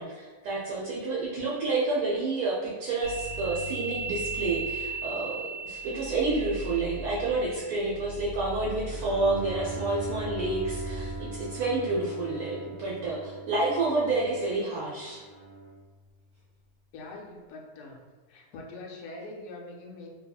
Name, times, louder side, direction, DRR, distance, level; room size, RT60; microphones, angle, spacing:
voice 1, 0.0-15.2, right 3 dB, 80° right, -5 dB, 1.1 m, -29 dB
sound 1, 3.0-11.6, right 3 dB, 60° left, 0.8 m, -37 dB
Bowed string instrument, 8.8-15.9, right 2 dB, 10° right, 0.8 m, -40 dB
voice 2, 16.9-18.0 18.3-20.1, left 2 dB, 90° left, 0 dB, 1.1 m, -43 dB
2.7 x 2.7 x 2.3 m, 1.4 s
omnidirectional pair, 1.6 m